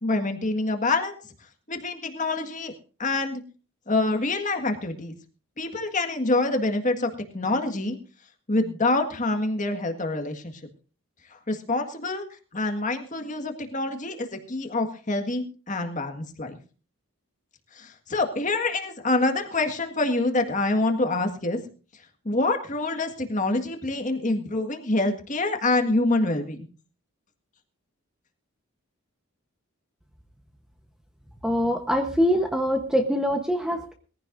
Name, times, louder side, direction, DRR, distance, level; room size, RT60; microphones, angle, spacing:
voice 1, 0.0-1.2 1.7-2.7 3.0-3.4 3.9-5.1 5.6-8.0 8.5-10.5 11.5-12.3 12.5-16.6 17.7-21.6 22.2-26.6, left 2 dB, 35° left, 6 dB, 1.8 m, -26 dB
voice 2, 31.4-33.9, equal, 5° right, 4 dB, 1.0 m, -24 dB
21.5 x 15.0 x 2.6 m, 0.36 s
head